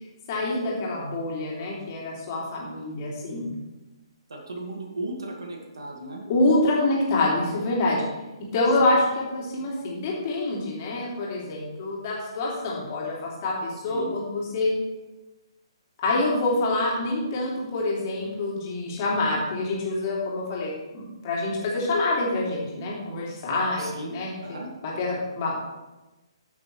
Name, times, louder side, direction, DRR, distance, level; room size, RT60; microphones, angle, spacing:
voice 1, 0.3-3.5 6.3-8.0 8.5-14.7 16.0-24.3 24.8-25.6, left 2 dB, 30° left, -4 dB, 2.6 m, -26 dB
voice 2, 4.3-6.2 8.8-9.0 13.9-14.1 23.8-24.1 24.4-24.7, right 2 dB, 60° right, 1 dB, 1.8 m, -36 dB
14.0 x 6.1 x 3.2 m, 1.1 s
figure-of-eight pair, 130°, 3 cm